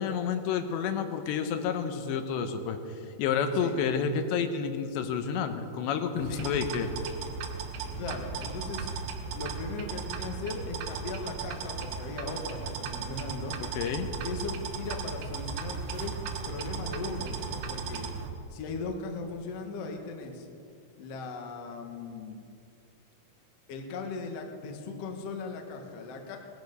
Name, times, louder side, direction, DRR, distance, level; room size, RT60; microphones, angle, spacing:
voice 1, 0.0-2.8 3.2-6.9 13.6-14.1, left 6 dB, 80° left, 7 dB, 3.1 m, -30 dB
sound 1, 6.2-18.3, right 5 dB, 80° right, 3.5 m, -36 dB
voice 2, 8.0-8.9 9.3-13.6 14.2-16.1 16.4-18.1 18.5-20.5 21.0-22.4 23.7-26.4, left 3 dB, 65° left, 3 dB, 1.6 m, -38 dB
18.5 x 14.0 x 5.3 m, 2.5 s
omnidirectional pair, 5.2 m